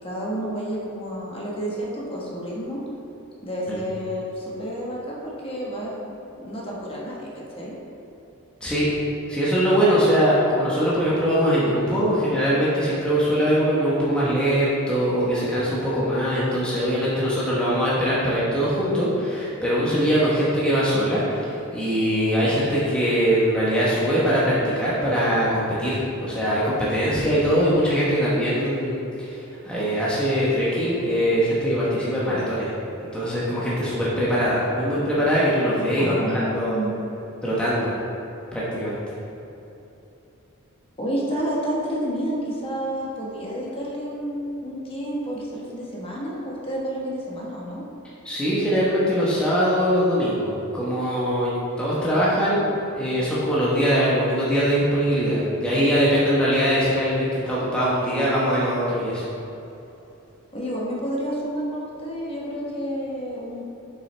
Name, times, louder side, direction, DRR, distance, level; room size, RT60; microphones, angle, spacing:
voice 1, 0.0-2.8 3.4-7.7 36.0-36.9 41.0-47.8 60.5-63.6, equal, 25° left, -4 dB, 1.2 m, -30 dB
voice 2, 9.3-32.7 33.0-36.9 37.4-37.9 38.5-39.0 48.2-59.2, equal, 5° left, -9 dB, 1.0 m, -22 dB
7.4 x 5.7 x 3.3 m, 2.9 s
head